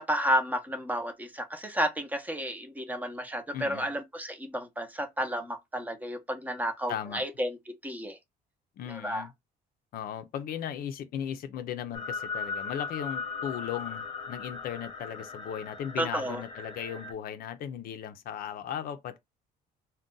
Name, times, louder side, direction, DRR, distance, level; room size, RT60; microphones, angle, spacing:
voice 1, 0.0-7.6 7.8-8.2 8.9-9.3 16.0-16.4, equal, 10° right, 0.7 m, -31 dB
voice 2, 3.5-3.9 6.9-7.2 8.8-9.3 9.9-19.2, left 9 dB, 60° left, 0.5 m, -37 dB
sound 1, 11.9-17.1, left 5 dB, 30° left, 0.9 m, -38 dB
2.5 x 2.2 x 3.7 m
cardioid pair, 110°, 17 cm